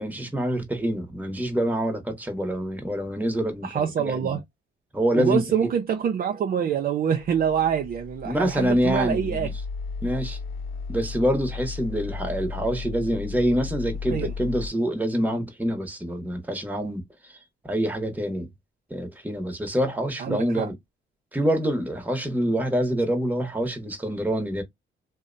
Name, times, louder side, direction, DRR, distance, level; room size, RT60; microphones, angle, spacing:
voice 1, 0.0-3.7 4.0-4.3 4.9-5.7 8.2-9.6 10.0-10.4 10.9-17.4 17.6-18.5 18.9-20.8 21.3-24.6, equal, 10° right, 1.0 m, -26 dB
voice 2, 3.6-4.4 5.2-9.5 14.1-14.3 20.2-20.7, right 8 dB, 45° right, 0.5 m, -25 dB
sound 1, 7.2-14.7, left 5 dB, 85° left, 0.5 m, -35 dB
2.7 x 2.0 x 2.5 m
cardioid pair, 90°, 20 cm